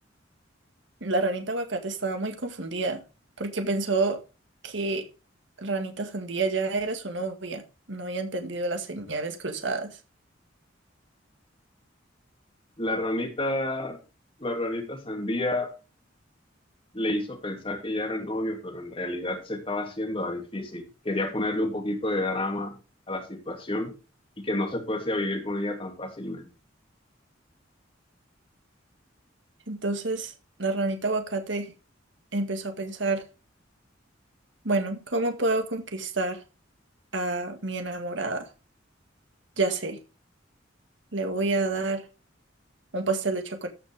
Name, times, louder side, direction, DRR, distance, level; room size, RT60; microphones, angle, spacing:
voice 1, 1.0-3.0 3.4-4.2 4.6-5.0 5.6-7.6 7.9-9.9 29.7-30.3 30.6-31.7 32.3-33.2 34.6-36.4 37.1-38.5 39.6-40.0 41.1-42.0 42.9-43.7, right 3 dB, 70° right, 1.9 m, -28 dB
voice 2, 12.8-14.0 14.4-15.7 16.9-22.7 23.1-23.9 24.4-26.5, left 1 dB, 30° left, 2.7 m, -30 dB
14.0 x 6.3 x 3.6 m
head